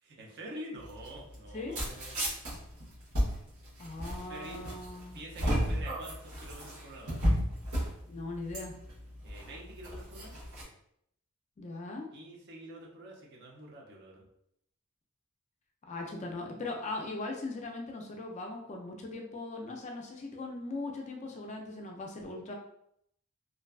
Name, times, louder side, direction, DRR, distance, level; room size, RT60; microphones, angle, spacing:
voice 1, 0.0-2.2 4.1-4.6 5.1-7.2 9.2-10.3 12.1-14.3, right 1 dB, 50° right, -1 dB, 0.6 m, -47 dB
sound 1, 0.8-10.6, equal, 85° right, 1.0 m, -34 dB
voice 2, 3.8-5.2 8.1-8.7 11.6-12.1 15.9-22.5, left 2 dB, 30° left, 1 dB, 0.3 m, -39 dB
2.5 x 2.2 x 2.3 m, 0.73 s
head